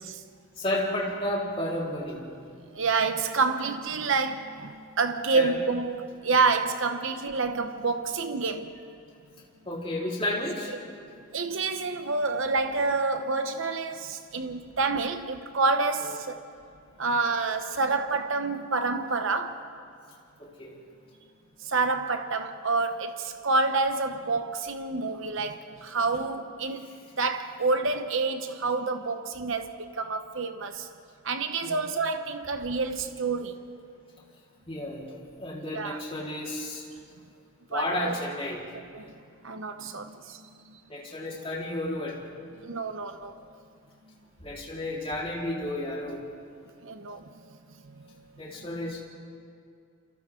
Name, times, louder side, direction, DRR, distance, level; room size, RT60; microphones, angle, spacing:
voice 1, 0.6-2.2 5.3-5.6 9.6-10.7 16.0-16.1 20.4-20.8 31.6-31.8 34.7-35.0 35.4-36.8 37.7-38.6 40.9-42.2 44.4-46.2 48.4-49.0, left 1 dB, 25° left, 4.3 m, -32 dB
voice 2, 2.7-8.7 10.7-10.8 11.3-16.4 17.0-19.6 21.6-30.9 31.2-33.6 35.7-36.0 37.7-38.1 38.9-39.1 39.4-40.8 42.6-43.3 46.8-47.2 47.9-48.1, right 4 dB, 60° right, 1.0 m, -28 dB
29.5 x 28.0 x 3.9 m
head